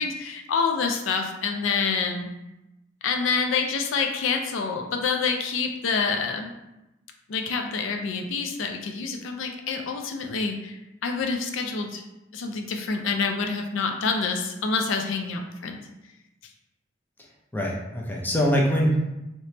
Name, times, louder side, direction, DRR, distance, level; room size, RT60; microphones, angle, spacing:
voice 1, 0.0-2.3 3.0-6.5 7.3-12.0 12.3-15.8, left 5 dB, 80° left, 4 dB, 0.4 m, -27 dB
voice 2, 17.5-19.0, equal, 10° left, -2 dB, 0.5 m, -23 dB
3.3 x 3.0 x 2.8 m, 0.95 s
head